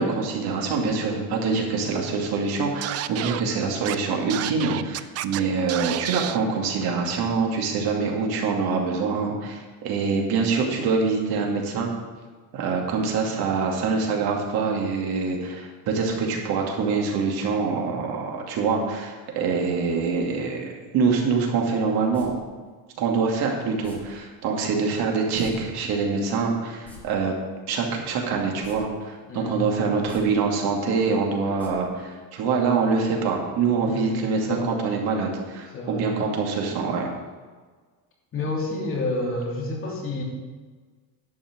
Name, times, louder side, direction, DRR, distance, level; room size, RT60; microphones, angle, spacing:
voice 1, 0.0-11.9 12.5-22.4 23.0-27.3 27.7-37.1, right 4 dB, 75° right, 0 dB, 2.4 m, -25 dB
Scratching (performance technique), 2.8-3.4 3.9-4.0 4.3-5.4 5.7-6.4, right 13 dB, 40° right, 0.4 m, -30 dB
sound 1, 22.1-22.3 23.8-24.0 25.3-25.5 25.8-25.9 26.7-27.0 28.6-28.8 29.1-29.2 30.0-30.2 31.6-31.7 32.0-32.1, left 1 dB, 5° left, 2.9 m, -45 dB
voice 2, 29.3-30.0 33.9-34.1 34.5-34.7 35.7-36.0 38.3-40.2, left 2 dB, 35° left, -3 dB, 3.0 m, -29 dB
11.0 x 5.9 x 7.4 m, 1.4 s
cardioid pair, 165°, 38 cm